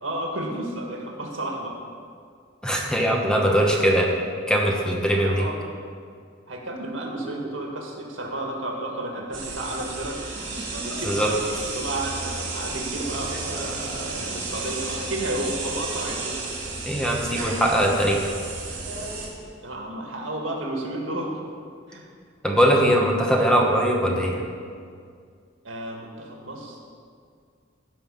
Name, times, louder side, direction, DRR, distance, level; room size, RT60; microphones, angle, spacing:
voice 1, 0.0-1.8 5.2-5.6 6.5-10.2 10.8-16.4 19.6-21.4 21.9-22.1 25.6-26.8, right 1 dB, 90° right, 0 dB, 1.8 m, -32 dB
voice 2, 2.6-4.1 4.5-5.5 11.0-11.3 16.9-18.2 22.4-24.5, equal, 5° left, -1 dB, 1.3 m, -21 dB
sound 1, 9.3-19.3, right 3 dB, 70° right, 3.3 m, -32 dB
16.0 x 5.7 x 5.6 m, 2.2 s
head